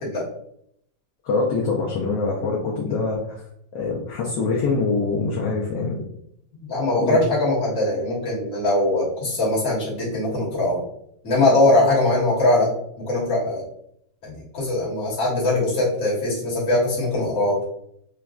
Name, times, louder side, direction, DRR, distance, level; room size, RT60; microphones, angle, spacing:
voice 1, 1.2-3.4 3.7-6.0 7.0-7.2, left 4 dB, 70° left, -3 dB, 1.1 m, -24 dB
voice 2, 6.6-10.8 11.2-13.6 14.2-17.6, left 2 dB, 40° left, -6 dB, 1.4 m, -21 dB
4.9 x 2.2 x 2.3 m, 0.72 s
omnidirectional pair, 2.4 m